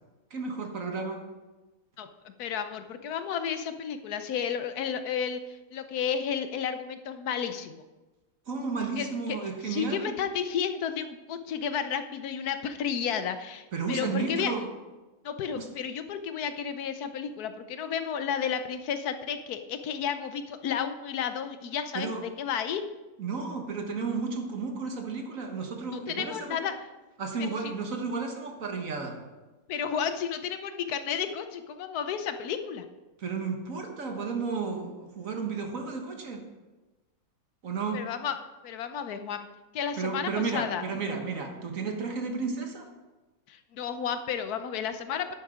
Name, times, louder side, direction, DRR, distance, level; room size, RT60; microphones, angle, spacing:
voice 1, 0.3-1.2 8.5-10.2 13.7-14.7 15.5-15.7 21.9-22.2 23.2-26.6 27.2-29.2 33.2-36.4 37.6-38.0 40.0-42.9, right 4 dB, 60° right, 3 dB, 1.8 m, -33 dB
voice 2, 2.0-7.8 9.0-9.4 9.6-14.5 15.2-22.8 25.9-26.7 27.6-27.7 29.7-32.8 37.9-38.4 38.6-39.5 39.7-40.8 43.5-45.3, left 7 dB, 85° left, 9 dB, 1.3 m, -32 dB
10.0 x 9.4 x 5.0 m, 1.2 s
omnidirectional pair, 1.6 m